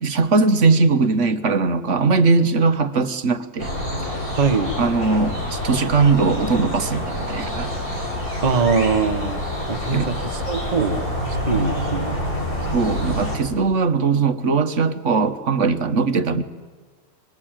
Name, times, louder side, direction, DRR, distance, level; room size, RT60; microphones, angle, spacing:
voice 1, 0.0-3.7 4.8-7.7 9.9-10.1 12.7-16.4, right 4 dB, 50° right, 9 dB, 1.5 m, -20 dB
sound 1, 3.6-13.4, left 1 dB, 60° left, 7.3 m, -27 dB
voice 2, 4.3-4.8 8.4-9.4 9.7-10.2 10.5-11.1 11.5-12.1, right 5 dB, 30° right, 7 dB, 1.2 m, -22 dB
25.0 x 23.5 x 9.0 m, 1.4 s
omnidirectional pair, 1.7 m